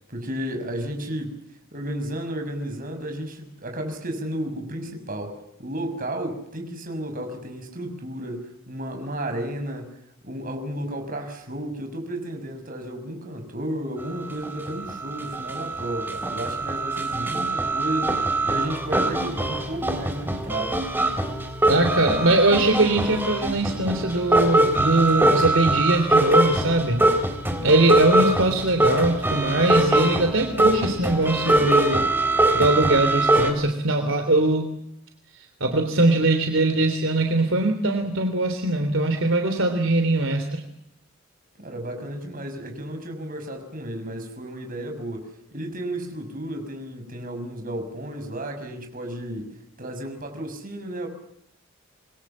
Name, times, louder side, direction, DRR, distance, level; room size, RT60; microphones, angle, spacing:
voice 1, 0.1-1.3 1.7-9.9 10.2-20.8 28.1-28.2 41.6-49.5 49.8-51.1, right 1 dB, 45° right, 4 dB, 6.5 m, -33 dB
sound 1, 14.0-14.1 14.4-33.5, right 1 dB, 10° right, 3.5 m, -23 dB
voice 2, 21.7-27.0 27.6-32.1 32.5-34.7 35.3-40.6, right 2 dB, 70° right, 5 dB, 3.3 m, -21 dB
27.5 x 22.5 x 7.4 m, 0.75 s
head